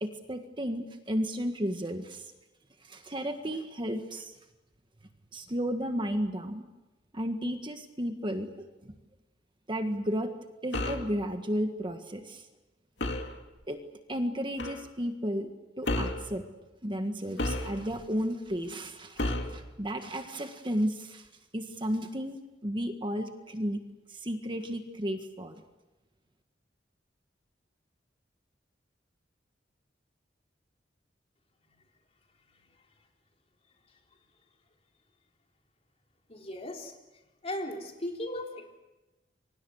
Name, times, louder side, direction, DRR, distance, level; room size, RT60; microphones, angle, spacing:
voice 1, 0.0-2.3 2.9-4.3 5.3-6.6 7.1-8.9 9.7-10.3 10.6-12.4 13.7-13.8 14.1-15.5 15.8-16.4 16.8-21.3 21.5-23.8 24.1-25.6, equal, 25° right, 6 dB, 1.6 m, -33 dB
sound 1, 10.7-11.1 13.0-13.3 14.6-14.8 15.8-16.3 17.4-18.0 19.2-19.6, left 1 dB, 75° left, 2.4 m, -31 dB
voice 2, 36.3-36.9 37.4-38.8, left 1 dB, 35° left, 1 dB, 3.8 m, -37 dB
29.0 x 24.0 x 6.5 m, 1.1 s
head